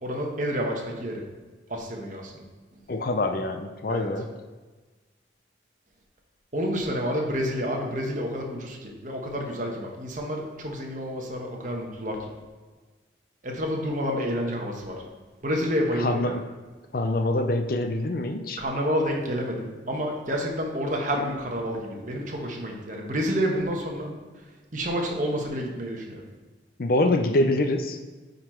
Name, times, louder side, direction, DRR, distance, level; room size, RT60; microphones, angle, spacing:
voice 1, 0.0-1.2 1.7-2.4 3.9-4.1 6.5-12.3 13.4-15.0 15.4-16.4 18.6-24.1 24.7-26.2, equal, 45° right, 0 dB, 1.1 m, -29 dB
voice 2, 2.9-4.3 15.9-16.4 16.9-18.6 26.8-28.0, left 2 dB, 50° left, 7 dB, 0.5 m, -25 dB
9.4 x 4.0 x 4.4 m, 1.3 s
head